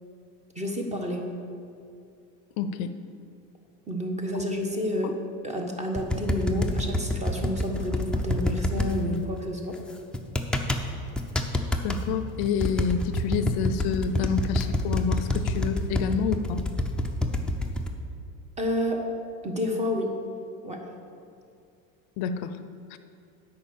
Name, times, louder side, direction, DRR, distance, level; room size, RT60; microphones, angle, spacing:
voice 1, 0.5-1.3 3.9-5.1 5.4-9.8 18.6-19.0 19.4-20.1 20.6-20.9, left 1 dB, 15° right, 2 dB, 1.2 m, -29 dB
voice 2, 2.6-2.9 11.8-16.6 22.2-22.6 22.9-23.0, left 6 dB, 65° left, 11 dB, 0.6 m, -28 dB
sound 1, 5.9-8.9 10.1-10.8 11.2-12.0 12.4-17.9, left 1 dB, ahead, 0.6 m, -27 dB
8.6 x 5.3 x 7.0 m, 2.4 s
supercardioid pair, 110°, 42 cm